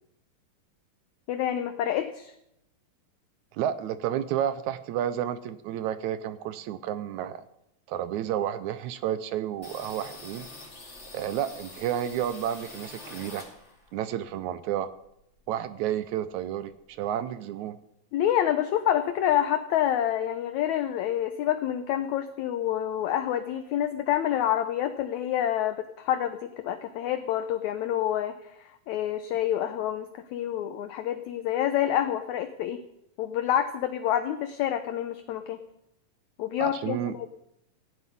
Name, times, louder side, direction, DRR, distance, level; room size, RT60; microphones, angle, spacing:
voice 1, 1.3-2.3 18.1-28.3 28.9-32.8 33.2-35.6 36.4-37.0, left 11 dB, 70° left, 8 dB, 1.9 m, -27 dB
voice 2, 3.5-7.4 7.9-10.5 11.1-13.4 13.9-14.9 15.5-17.8 36.6-37.1, right 10 dB, 75° right, 13 dB, 1.8 m, -31 dB
sound 1, 9.6-14.0 14.3-15.7 16.0-16.1 16.3-17.0, left 2 dB, 20° left, 2.3 m, -46 dB
17.0 x 7.8 x 9.9 m, 0.82 s
omnidirectional pair, 4.0 m